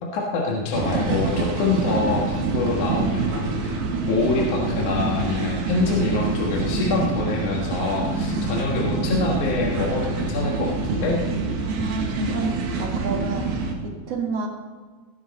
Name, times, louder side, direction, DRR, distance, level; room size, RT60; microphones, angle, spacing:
voice 1, 0.0-3.8 4.1-11.2, left 3 dB, 60° left, -2 dB, 2.8 m, -25 dB
sound 1, 0.7-13.7, right 3 dB, 90° right, 3.7 m, -26 dB
voice 2, 11.6-13.5 13.8-14.5, right 4 dB, 50° right, 1 dB, 2.4 m, -29 dB
19.5 x 10.5 x 4.2 m, 1.5 s
omnidirectional pair, 4.3 m